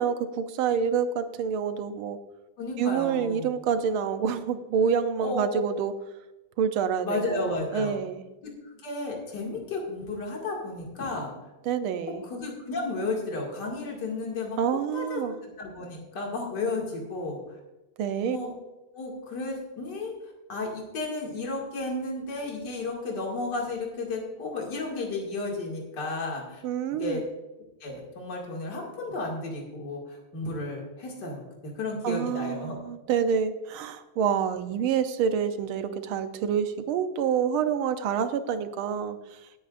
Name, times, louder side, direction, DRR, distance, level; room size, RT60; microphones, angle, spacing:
voice 1, 0.0-2.2 2.8-5.9 6.6-8.2 11.6-12.2 14.6-15.4 18.0-18.4 26.6-27.2 32.0-39.4, right 7 dB, 80° right, 9 dB, 1.6 m, -27 dB
voice 2, 2.6-3.5 5.2-5.6 7.0-8.0 8.4-8.5 8.8-11.3 12.2-14.6 14.9-17.4 18.3-18.5 18.9-20.1 20.5-26.6 27.0-27.2 27.8-30.0 30.3-32.8, left 3 dB, 55° left, -1 dB, 2.8 m, -33 dB
17.5 x 9.0 x 2.5 m, 1.0 s
omnidirectional pair, 2.3 m